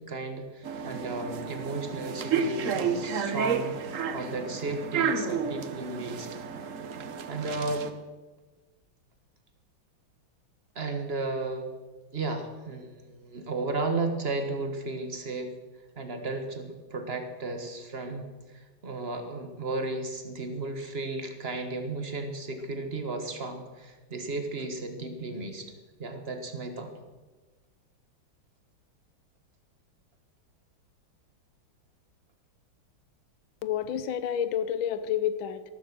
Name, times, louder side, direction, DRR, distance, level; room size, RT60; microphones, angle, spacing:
voice 1, 0.0-6.3 7.3-7.9 10.7-11.7 12.1-15.5 16.0-25.7 26.0-26.9, right 3 dB, 30° right, 6 dB, 1.5 m, -34 dB
sound 1, 0.6-7.9, right 6 dB, 55° right, 0.9 m, -31 dB
voice 2, 33.6-35.6, left 9 dB, 75° left, 13 dB, 1.6 m, -29 dB
13.5 x 12.5 x 6.2 m, 1.2 s
omnidirectional pair, 2.3 m